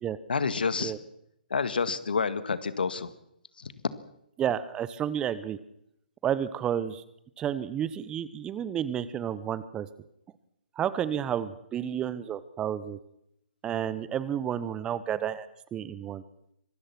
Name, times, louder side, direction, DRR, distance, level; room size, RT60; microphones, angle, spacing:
voice 1, 0.3-0.9 1.5-3.1 3.6-3.7, left 5 dB, 70° left, 14 dB, 1.9 m, -28 dB
voice 2, 4.4-5.6 6.2-7.0 7.4-9.9 10.8-13.0 13.6-16.2, right 9 dB, 15° right, 16 dB, 1.0 m, -31 dB
25.0 x 19.5 x 6.1 m, 0.77 s
figure-of-eight pair, 135°, 5 cm